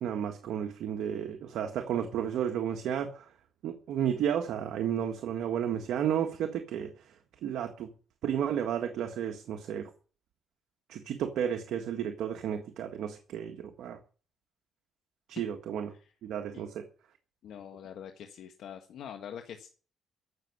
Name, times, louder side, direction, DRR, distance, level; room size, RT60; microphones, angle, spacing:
voice 1, 0.0-3.3 3.6-6.9 7.4-7.9 8.2-9.9 10.9-14.0 15.3-15.9 16.2-16.8, right 9 dB, 80° right, 4 dB, 1.6 m, -32 dB
voice 2, 17.4-19.7, left 8 dB, 75° left, 5 dB, 1.6 m, -44 dB
15.5 x 6.6 x 9.7 m, 0.40 s
cardioid pair, 90°, 0 cm